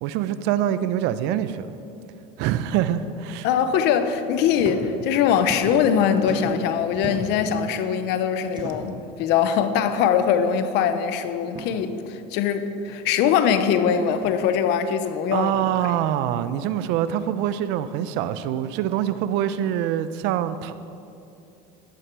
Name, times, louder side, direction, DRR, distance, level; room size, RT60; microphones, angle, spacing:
voice 1, 0.0-1.7 2.4-3.5 15.3-20.7, right 11 dB, 70° right, 13 dB, 0.7 m, -25 dB
voice 2, 3.4-15.5, left 8 dB, 65° left, 9 dB, 1.1 m, -22 dB
sound 1, 4.5-4.8 5.1-5.9 6.2-7.5 8.5-9.0 9.9-10.1 10.4-10.5 11.4-11.7 12.9-13.0 14.1-14.4 15.5-15.7, right 2 dB, 25° right, 2.0 m, -37 dB
14.5 x 11.0 x 4.8 m, 2.6 s
supercardioid pair, 120°, 19 cm